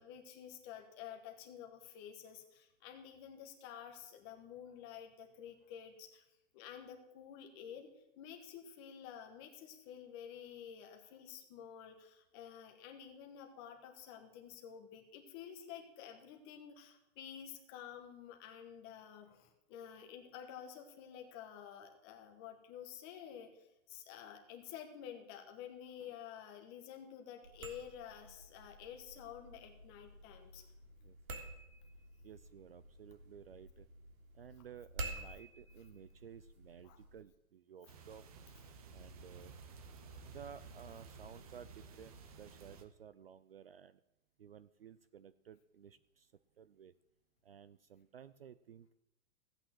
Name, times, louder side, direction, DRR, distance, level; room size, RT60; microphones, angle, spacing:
voice 1, 0.0-6.2 6.5-30.7 36.8-37.0, left 9 dB, 20° left, 4 dB, 1.2 m, -51 dB
sound 1, 27.4-37.2, right 2 dB, 85° right, 3.3 m, -50 dB
voice 2, 32.2-33.9 34.3-38.2 38.9-39.5 40.2-44.0 44.4-46.9 47.4-48.9, right 8 dB, 45° right, 15 dB, 0.5 m, -55 dB
sound 2, 37.9-42.8, right 4 dB, 25° right, 0.9 m, -54 dB
15.5 x 8.9 x 7.5 m, 0.87 s
hypercardioid pair, 175°, 41 cm